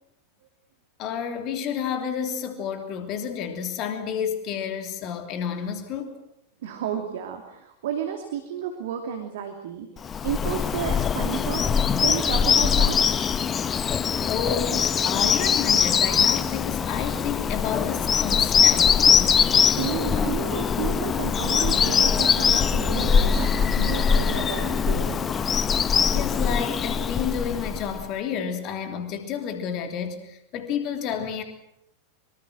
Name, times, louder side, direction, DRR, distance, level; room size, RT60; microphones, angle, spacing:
voice 1, 1.0-6.1 14.3-19.4 26.1-31.4, left 7 dB, 40° left, 5 dB, 3.1 m, -30 dB
voice 2, 6.6-13.2 19.6-25.3, right 8 dB, 55° right, 4 dB, 2.8 m, -32 dB
Bird vocalization bird call bird song, 10.0-28.0, left 7 dB, 25° left, 1.0 m, -22 dB
24.5 x 24.5 x 6.4 m, 0.81 s
figure-of-eight pair, 90°, 0 cm